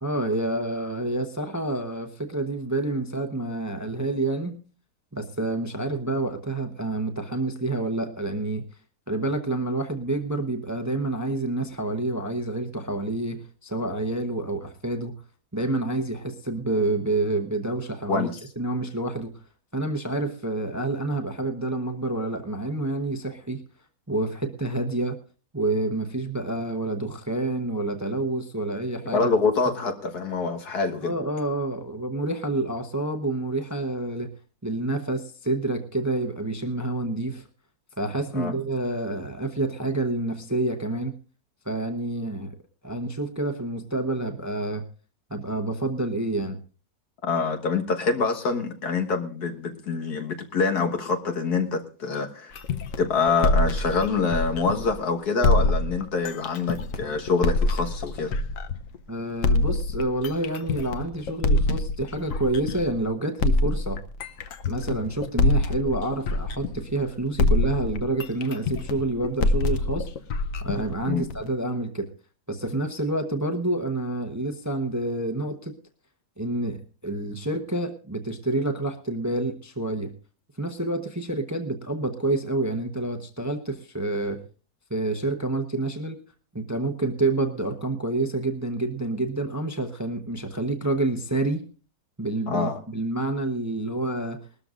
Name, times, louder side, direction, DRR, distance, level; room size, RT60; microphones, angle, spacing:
voice 1, 0.0-4.5 5.1-8.6 9.1-15.1 15.5-18.3 18.6-19.3 19.7-23.6 24.1-25.2 25.5-29.3 31.0-34.3 34.6-37.5 38.0-41.1 41.6-42.5 42.8-44.8 45.3-46.6 59.1-64.0 64.7-70.1 70.6-72.1 72.5-75.7 76.4-80.1 80.6-84.4 84.9-86.2 86.5-91.6 92.2-94.4, right 2 dB, 15° right, 6 dB, 0.7 m, -28 dB
voice 2, 18.1-18.4 29.1-31.1 38.3-38.5 47.2-52.6 53.0-58.3 71.1-71.3 92.5-92.8, left 4 dB, 80° left, 4 dB, 2.0 m, -25 dB
sound 1, 52.6-55.0 55.4-59.0 59.4-63.0 63.4-67.1 67.4-71.5, left 2 dB, 60° left, 1.1 m, -25 dB
21.0 x 13.0 x 2.5 m, 0.37 s
omnidirectional pair, 1.7 m